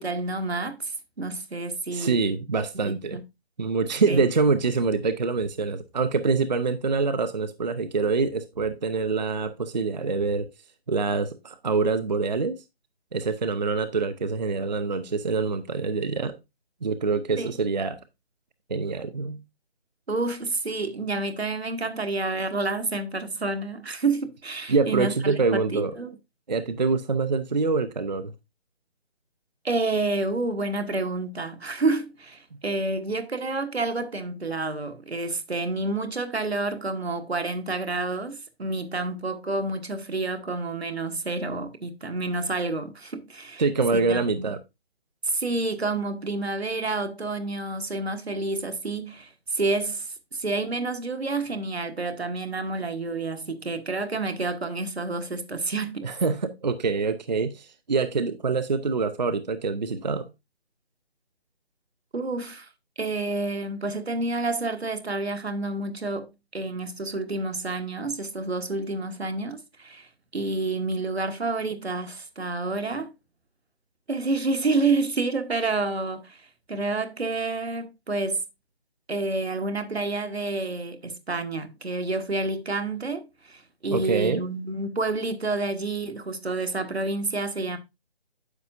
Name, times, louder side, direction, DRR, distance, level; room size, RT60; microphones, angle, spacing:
voice 1, 0.0-2.2 2.8-3.2 4.1-4.2 17.4-17.5 20.1-26.2 29.6-43.6 43.9-44.5 45.2-56.1 58.2-58.3 62.1-62.7 63.0-73.1 74.1-78.4 79.1-87.8, right 3 dB, 75° right, 1.3 m, -29 dB
voice 2, 1.9-3.2 3.6-10.5 10.9-12.6 13.1-16.4 16.8-18.0 18.7-19.4 24.7-25.9 26.5-28.3 43.6-44.6 56.0-60.3 83.9-84.4, right 4 dB, 45° right, 0.5 m, -25 dB
9.6 x 6.8 x 2.5 m
figure-of-eight pair, 150°, 32 cm